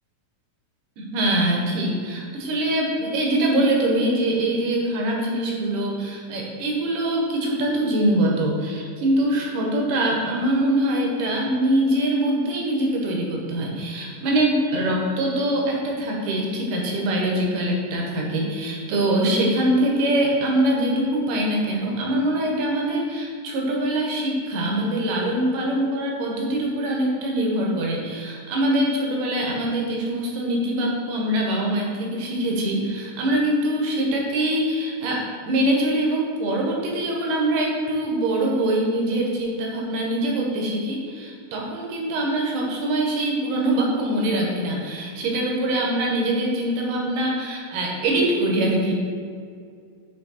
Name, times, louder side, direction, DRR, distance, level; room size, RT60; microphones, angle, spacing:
voice 1, 1.0-48.9, right 1 dB, 75° right, -1 dB, 2.1 m, -23 dB
7.8 x 3.2 x 4.1 m, 2.2 s
omnidirectional pair, 4.1 m